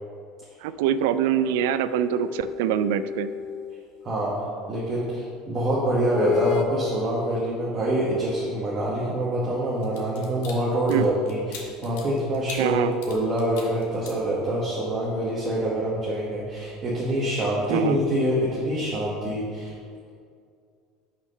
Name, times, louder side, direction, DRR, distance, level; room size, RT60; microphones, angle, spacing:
voice 1, 0.6-3.3 10.9-11.0 12.6-12.9 17.7-18.0, right 10 dB, 80° right, 13 dB, 0.3 m, -24 dB
sound 1, 0.9-4.2 6.1-6.6, left 9 dB, 45° left, 0.5 m, -32 dB
voice 2, 4.7-19.7, right 1 dB, 25° right, -6 dB, 1.2 m, -25 dB
sound 2, 9.8-14.8 15.2-15.4, left 5 dB, 80° left, 1.5 m, -43 dB
6.0 x 5.8 x 5.4 m, 2.2 s
cardioid pair, 165°, 0 cm